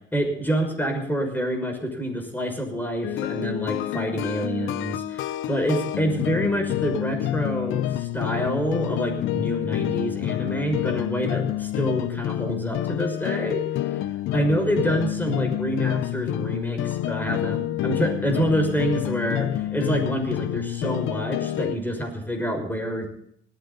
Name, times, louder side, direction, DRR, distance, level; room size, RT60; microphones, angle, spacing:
voice 1, 0.1-13.6 13.9-14.0 14.3-23.1, right 1 dB, 10° left, 4 dB, 6.1 m, -27 dB
sound 1, 3.0-21.8, left 13 dB, 90° left, 0.7 m, -28 dB
19.0 x 15.0 x 4.1 m, 0.67 s
cardioid pair, 90°, 20 cm